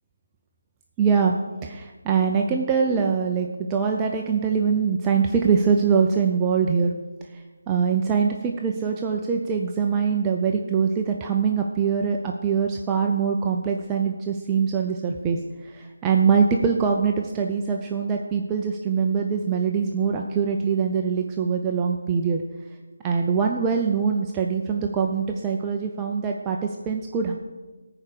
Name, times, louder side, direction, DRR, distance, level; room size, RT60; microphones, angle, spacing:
voice 1, 1.0-1.4 1.6-6.9 7.2-22.4 23.0-27.3, right 6 dB, 15° right, 1 dB, 0.5 m, -23 dB
14.5 x 4.9 x 6.7 m, 1.3 s
figure-of-eight pair, 160°, 0 cm